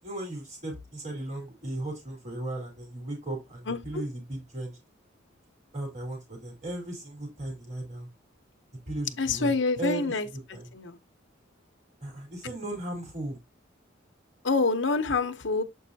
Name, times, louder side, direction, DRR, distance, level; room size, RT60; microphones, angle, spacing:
voice 1, 0.0-4.8 5.7-8.1 8.9-9.5 9.8-10.1 10.5-10.7 12.0-13.4, right 1 dB, 35° right, 3.9 m, -36 dB
voice 2, 9.2-10.3 10.7-11.0 14.4-15.6, left 3 dB, 70° left, 0.9 m, -26 dB
7.8 x 5.4 x 2.8 m
head